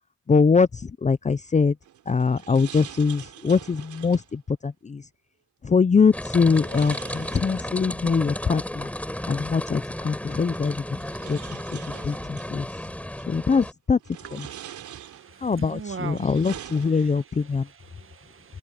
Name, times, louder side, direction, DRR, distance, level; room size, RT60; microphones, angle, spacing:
voice 1, 0.3-0.7 1.0-1.7 2.1-5.0 5.6-8.9 9.3-10.8 11.3-11.8 12.1-12.7 13.3-14.0 14.3-14.5 15.4-17.6, left 5 dB, 25° left, 0.7 m, -22 dB
sound 1, 1.8-4.4 6.4-8.0 9.4-9.5 10.5-12.5 13.2-13.6 14.0-15.5 16.0-17.4, right 11 dB, 75° right, 3.8 m, -44 dB
sound 2, 6.1-13.7, left 1 dB, 5° left, 5.0 m, -34 dB
voice 2, 14.2-18.6, right 6 dB, 45° right, 1.7 m, -42 dB
cardioid pair, 90°, 30 cm